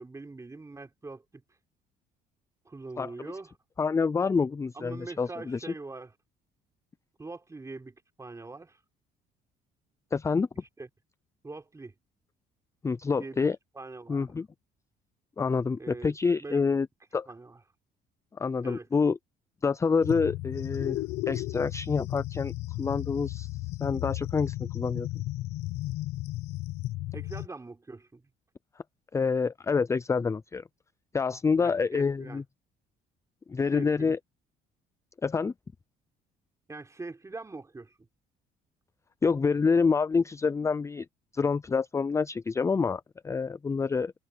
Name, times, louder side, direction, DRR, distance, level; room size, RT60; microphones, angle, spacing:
voice 1, 0.0-1.4 2.6-3.5 4.7-6.1 7.2-8.8 10.8-10.9 11.4-11.9 13.2-13.4 13.7-14.3 15.8-16.1 16.4-16.8 17.3-17.6 18.6-18.9 27.1-28.2 31.6-32.4 33.7-34.1 36.7-37.9, right 3 dB, 20° right, 4.8 m, -42 dB
voice 2, 3.0-3.3 3.8-5.7 10.1-10.5 12.8-13.6 14.1-14.5 15.4-16.9 17.1-17.3 18.3-19.2 19.6-21.0 21.3-22.5 22.8-23.5 23.8-25.2 29.1-30.6 31.1-32.4 33.5-34.2 35.2-35.5 39.2-41.1 41.3-44.1, left 5 dB, 15° left, 0.4 m, -27 dB
sound 1, 20.0-27.5, left 17 dB, 85° left, 0.9 m, -34 dB
cardioid pair, 110°, 17 cm